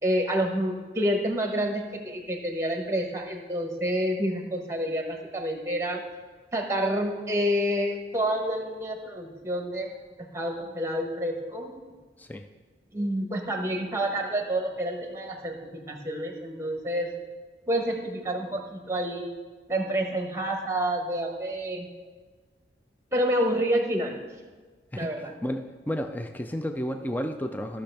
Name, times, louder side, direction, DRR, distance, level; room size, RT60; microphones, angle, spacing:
voice 1, 0.0-6.0 6.5-9.9 10.2-11.7 12.9-17.1 17.7-19.3 19.7-21.9 23.1-24.1 24.9-25.3, equal, 15° right, 3 dB, 1.0 m, -28 dB
voice 2, 25.4-27.8, equal, 10° left, 6 dB, 0.3 m, -32 dB
14.0 x 6.4 x 3.4 m, 1.4 s
head